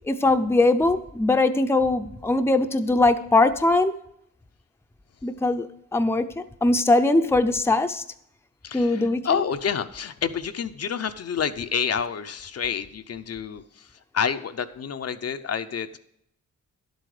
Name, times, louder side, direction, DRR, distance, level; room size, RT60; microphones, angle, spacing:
voice 1, 0.1-3.9 5.2-5.7 5.9-8.0 8.7-9.4, left 2 dB, 10° left, 7 dB, 0.6 m, -21 dB
voice 2, 8.6-13.9 14.1-16.0, left 7 dB, 50° left, 9 dB, 0.6 m, -28 dB
11.5 x 7.9 x 4.9 m, 0.75 s
wide cardioid pair, 120°, 31 cm